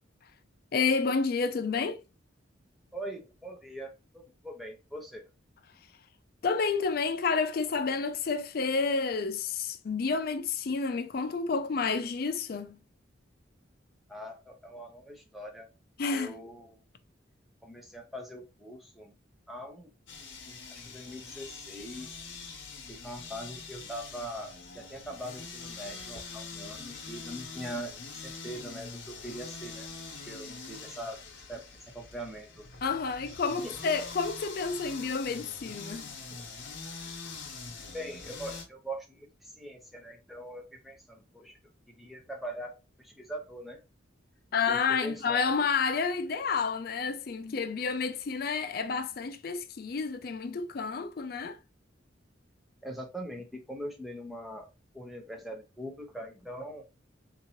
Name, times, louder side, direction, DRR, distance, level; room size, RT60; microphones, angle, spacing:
voice 1, 0.7-2.0 6.4-12.8 16.0-16.4 32.8-36.1 44.5-51.6, left 5 dB, 50° left, 0.4 m, -30 dB
voice 2, 2.9-3.9 4.4-5.2 14.1-15.7 16.1-16.6 17.6-19.1 19.5-19.9 20.5-22.1 22.9-27.9 28.2-29.9 30.3-31.2 31.5-31.6 31.9-32.7 33.6-33.7 37.9-39.2 39.6-41.5 42.0-43.8 44.7-45.4 52.8-54.7 54.9-56.8, right 1 dB, ahead, 0.7 m, -42 dB
sound 1, 20.1-38.6, left 4 dB, 75° left, 1.0 m, -44 dB
3.6 x 2.8 x 2.9 m
head